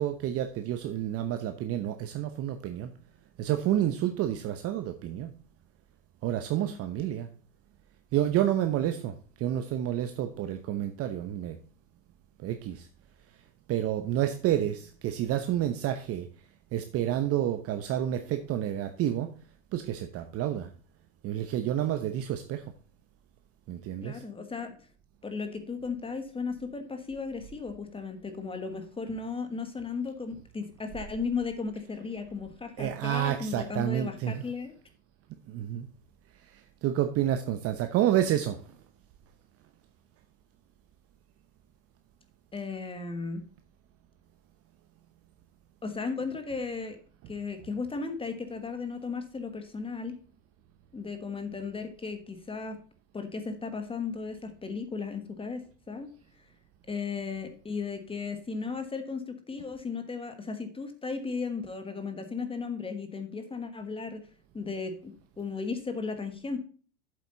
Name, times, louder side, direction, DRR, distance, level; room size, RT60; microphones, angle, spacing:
voice 1, 0.0-2.9 3.4-5.3 6.2-7.3 8.1-11.6 12.4-12.9 13.7-16.3 16.7-19.3 19.7-20.7 21.2-22.6 23.7-24.2 32.8-34.4 35.5-35.9 36.5-38.6, right 11 dB, 45° right, 8 dB, 1.0 m, -29 dB
voice 2, 24.0-24.8 25.2-34.7 42.5-43.4 45.8-47.0 47.3-50.2 50.9-52.8 53.1-56.1 56.9-64.2 64.5-66.6, left 4 dB, 15° left, 8 dB, 1.5 m, -35 dB
8.3 x 7.8 x 3.9 m, 0.41 s
hypercardioid pair, 100°, 33 cm